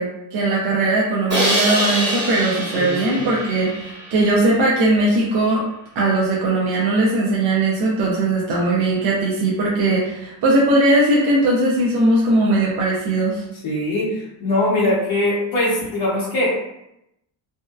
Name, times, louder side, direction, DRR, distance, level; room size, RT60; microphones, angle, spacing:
voice 1, 0.0-5.6 6.0-13.4, right 2 dB, 60° right, -4 dB, 0.5 m, -19 dB
Crash cymbal, 1.3-4.4, equal, 25° right, 0.8 m, -24 dB
voice 2, 2.7-3.3 13.6-16.6, left 1 dB, 55° left, -10 dB, 0.7 m, -22 dB
2.7 x 2.0 x 2.2 m, 0.83 s
cardioid pair, 180°, 46 cm